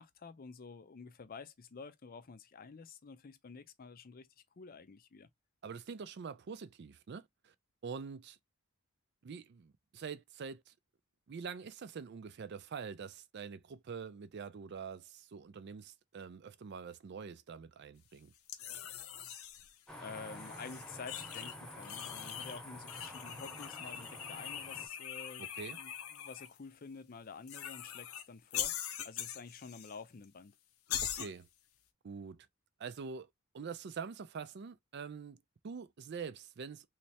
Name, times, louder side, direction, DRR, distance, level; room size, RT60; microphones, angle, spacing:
voice 1, 0.0-4.3 4.6-5.3 20.0-30.5, left 5 dB, 45° left, 0.5 m, -50 dB
voice 2, 5.6-7.5 7.8-8.4 9.2-10.7 11.3-18.3 25.4-25.8 31.0-31.5 32.0-32.5 32.8-33.3 33.5-36.9, right 6 dB, 55° right, 0.4 m, -45 dB
sound 1, 18.5-19.7 20.4-21.6 21.8-22.6 22.9-26.5 27.5-28.2 28.5-30.0 30.2-30.3 30.9-31.3, left 10 dB, 90° left, 0.7 m, -42 dB
sound 2, 19.9-24.9, left 1 dB, 5° left, 0.9 m, -49 dB
3.2 x 3.1 x 2.8 m
head